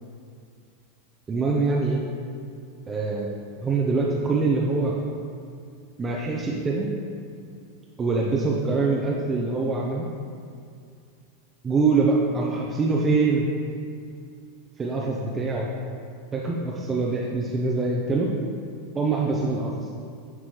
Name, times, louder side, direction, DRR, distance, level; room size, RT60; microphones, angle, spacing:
voice 1, 1.3-2.0 2.9-3.3 3.6-4.9 6.0-6.9 8.0-10.1 11.6-13.5 14.8-15.7 16.3-18.3 19.0-19.7, right 3 dB, 20° right, -3 dB, 0.7 m, -24 dB
9.7 x 4.7 x 3.0 m, 2.3 s
figure-of-eight pair, 85°, 0 cm